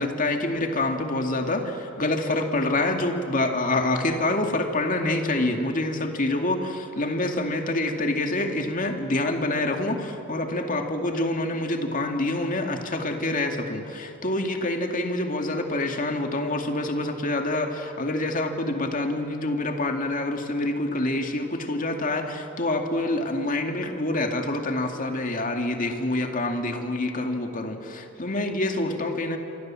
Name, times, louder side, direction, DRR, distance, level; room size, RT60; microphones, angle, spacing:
voice 1, 0.0-29.4, left 2 dB, 35° left, 4 dB, 2.4 m, -26 dB
28.0 x 25.0 x 7.7 m, 2.8 s
head